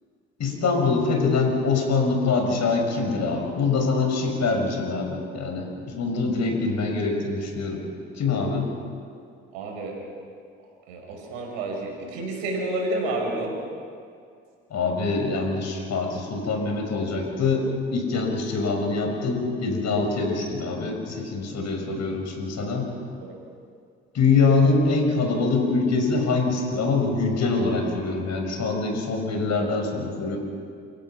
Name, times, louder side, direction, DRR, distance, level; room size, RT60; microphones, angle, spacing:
voice 1, 0.4-7.8 8.1-8.7 14.7-22.9 24.1-30.4, left 4 dB, 60° left, 2 dB, 6.1 m, -24 dB
voice 2, 9.5-10.0 10.9-13.5 23.2-23.3, right 2 dB, 85° right, 1 dB, 5.6 m, -29 dB
29.5 x 16.5 x 5.9 m, 2.3 s
hypercardioid pair, 55°, 32 cm